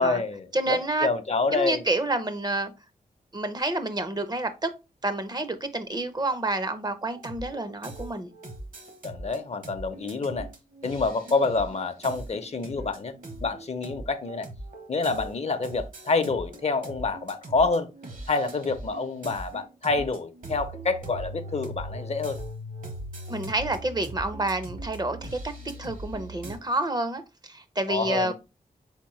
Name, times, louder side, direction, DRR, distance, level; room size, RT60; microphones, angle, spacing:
voice 1, 0.0-1.8 9.0-10.5 10.8-13.1 13.4-14.5 14.9-17.9 18.3-22.4 27.9-28.3, left 3 dB, 45° left, 0.5 m, -27 dB
voice 2, 0.5-1.1 1.5-2.7 3.3-4.7 5.0-8.3 23.3-25.5 25.8-28.3, right 2 dB, 25° right, 0.5 m, -29 dB
sound 1, 7.1-26.6, right 1 dB, 65° right, 1.1 m, -40 dB
4.1 x 3.6 x 3.0 m
wide cardioid pair, 105°, 15 cm